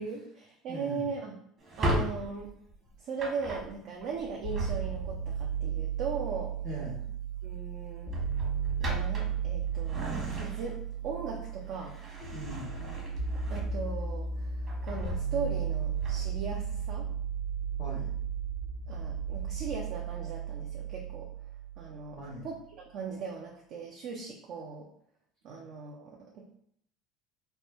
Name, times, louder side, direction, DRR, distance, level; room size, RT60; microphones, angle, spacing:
voice 1, 0.0-1.3 1.8-2.5 3.0-6.5 7.4-8.1 8.8-10.8 11.0-12.0 13.5-17.1 18.9-21.3 21.8-22.2 22.4-22.6 22.9-24.8 25.4-26.5, right 5 dB, 60° right, -1 dB, 0.5 m, -38 dB
voice 2, 0.7-1.1 6.6-7.0 12.3-12.8 17.8-18.1 22.1-22.5 25.5-25.6, right 1 dB, 85° right, -11 dB, 1.2 m, -41 dB
Drawer open or close, 1.6-5.3 6.7-7.0 7.4-7.5 8.0-10.9 11.4-14.1 14.5-16.5, equal, 40° right, 1.2 m, -37 dB
sound 1, 4.4-22.4, right 7 dB, 65° left, 0.5 m, -34 dB
3.1 x 2.2 x 3.0 m, 0.68 s
hypercardioid pair, 70°, 0 cm